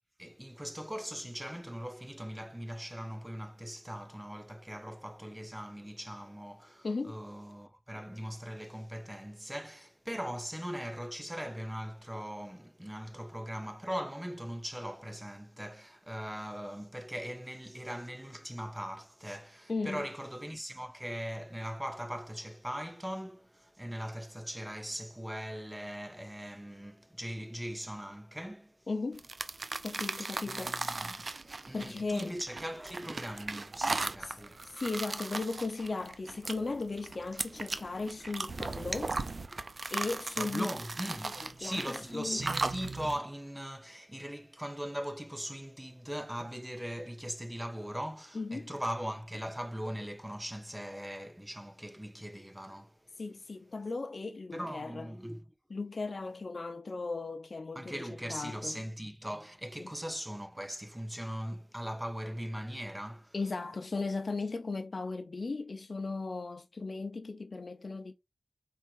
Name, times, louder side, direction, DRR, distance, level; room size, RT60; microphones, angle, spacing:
voice 1, 0.2-28.9 30.2-31.4 31.7-34.8 40.4-53.2 54.5-55.4 57.7-63.3, equal, 10° right, 0.9 m, -40 dB
voice 2, 6.8-7.2 19.7-20.0 28.9-29.2 29.8-30.8 31.7-32.4 34.2-34.4 34.6-39.1 39.9-40.7 41.6-42.4 48.3-48.7 53.2-55.1 55.7-58.8 59.8-59.9 63.3-68.1, left 3 dB, 70° left, 0.7 m, -36 dB
sound 1, 29.2-43.2, right 3 dB, 65° right, 0.5 m, -37 dB
4.5 x 4.3 x 2.5 m
wide cardioid pair, 60°, 0 cm